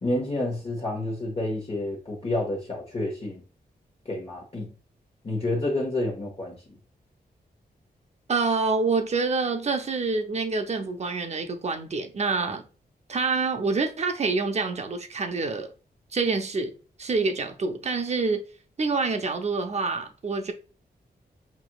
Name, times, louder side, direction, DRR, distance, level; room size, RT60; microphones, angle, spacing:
voice 1, 0.0-3.4 4.1-4.7 5.2-6.6, left 1 dB, 35° left, 1.2 m, -29 dB
voice 2, 8.3-12.6 13.1-15.7 16.1-16.7 17.0-18.4 18.8-20.5, right 4 dB, 40° right, 0.7 m, -26 dB
5.9 x 3.0 x 2.3 m
wide cardioid pair, 145°, 17 cm